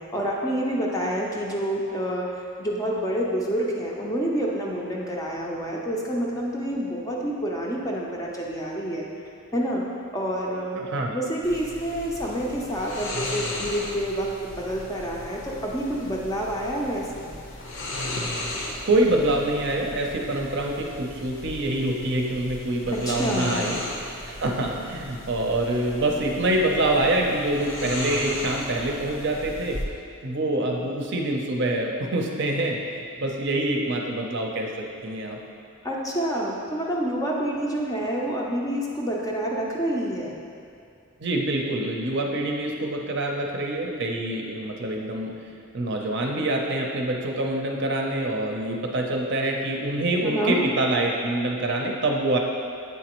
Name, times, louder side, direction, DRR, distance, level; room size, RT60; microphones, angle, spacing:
voice 1, 0.1-9.1 9.5-9.8 10.1-10.8 11.1-17.4 22.9-23.6 35.8-40.4 50.2-50.6, equal, 15° left, -3 dB, 0.5 m, -28 dB
voice 2, 10.8-11.1 18.9-23.8 24.3-29.8 30.2-35.4 41.2-45.3 45.7-52.4, right 1 dB, 50° right, 0 dB, 0.6 m, -25 dB
sound 1, 11.4-29.8, left 1 dB, 60° left, 0.7 m, -36 dB
8.2 x 4.1 x 3.0 m, 2.4 s
head